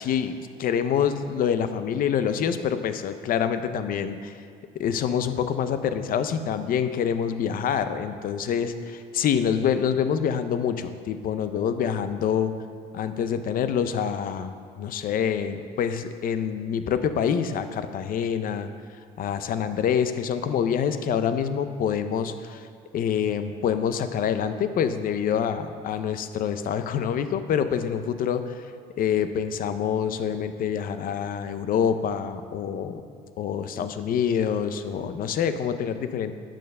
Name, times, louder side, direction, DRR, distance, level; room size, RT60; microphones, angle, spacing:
voice 1, 0.0-4.3 4.8-12.5 12.9-14.5 14.8-18.7 19.2-22.7 22.9-28.5 29.0-33.0 33.4-36.3, left 8 dB, 55° left, 10 dB, 0.6 m, -26 dB
9.1 x 6.5 x 5.3 m, 2.1 s
cardioid pair, 110°, 17 cm